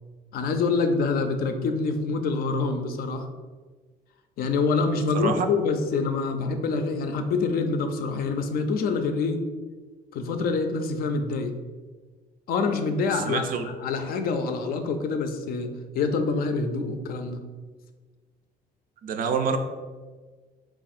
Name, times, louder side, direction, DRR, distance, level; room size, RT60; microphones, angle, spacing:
voice 1, 0.3-3.3 4.4-9.4 10.1-11.5 12.5-17.4, left 4 dB, 60° left, 7 dB, 0.5 m, -26 dB
voice 2, 5.1-5.5 13.1-13.7 19.0-19.6, right 6 dB, 55° right, 7 dB, 0.4 m, -27 dB
3.6 x 2.4 x 4.1 m, 1.4 s
cardioid pair, 110°, 17 cm